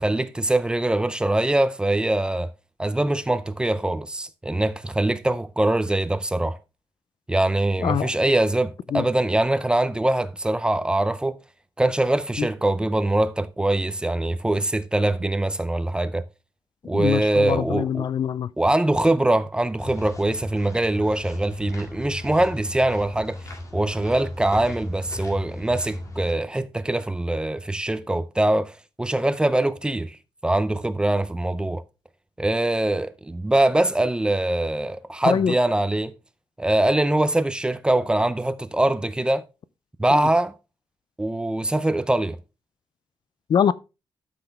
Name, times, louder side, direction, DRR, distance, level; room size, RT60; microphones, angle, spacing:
voice 1, 0.0-2.5 2.8-6.6 7.3-11.4 11.8-16.2 16.9-18.0 18.6-23.4 23.7-30.2 30.4-31.8 32.4-36.1 36.6-39.4 40.0-40.5 41.2-42.4, right 1 dB, 10° right, 0.5 m, -23 dB
voice 2, 16.9-18.5 35.3-35.5 40.1-40.3 43.5-43.7, left 8 dB, 50° left, 0.4 m, -23 dB
sound 1, 19.8-26.3, left 1 dB, 35° left, 2.2 m, -36 dB
12.0 x 5.9 x 3.4 m
wide cardioid pair, 175°, 9 cm